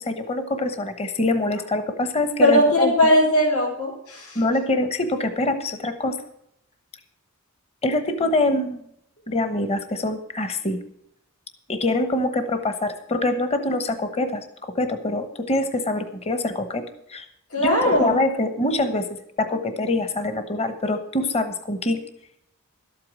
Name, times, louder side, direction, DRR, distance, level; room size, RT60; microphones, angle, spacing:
voice 1, 0.0-3.1 4.3-6.2 7.8-8.8 9.3-10.8 11.7-14.4 14.8-17.3 17.6-19.1 19.4-22.0, left 2 dB, 30° left, 9 dB, 1.0 m, -24 dB
voice 2, 2.4-4.4 17.5-18.1, left 1 dB, 85° left, -6 dB, 4.3 m, -19 dB
12.5 x 8.5 x 6.2 m, 0.75 s
head